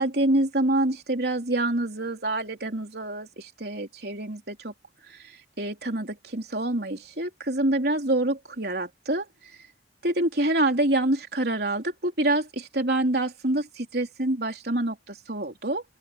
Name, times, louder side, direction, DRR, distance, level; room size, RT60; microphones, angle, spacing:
voice 1, 0.0-4.7 5.1-9.3 10.0-15.8, right 1 dB, 60° right, 3.9 m, -26 dB
open air
head